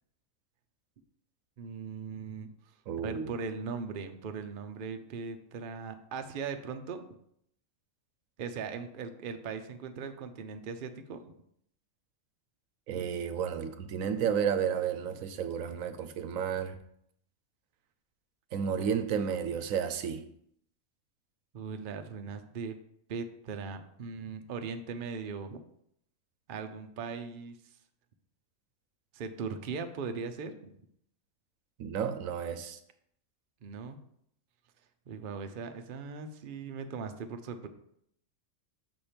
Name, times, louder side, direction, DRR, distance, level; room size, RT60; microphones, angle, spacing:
voice 1, 1.6-2.5 3.0-7.0 8.4-11.3 12.9-13.1 21.5-22.7 23.1-25.6 26.5-27.6 29.1-30.7 33.6-34.0 35.1-37.7, right 5 dB, 50° right, 7 dB, 0.6 m, -39 dB
voice 2, 2.9-3.3 12.9-16.7 18.5-20.2 31.8-32.8, right 7 dB, 80° right, 9 dB, 1.1 m, -32 dB
6.3 x 4.4 x 5.1 m, 0.70 s
omnidirectional pair, 1.4 m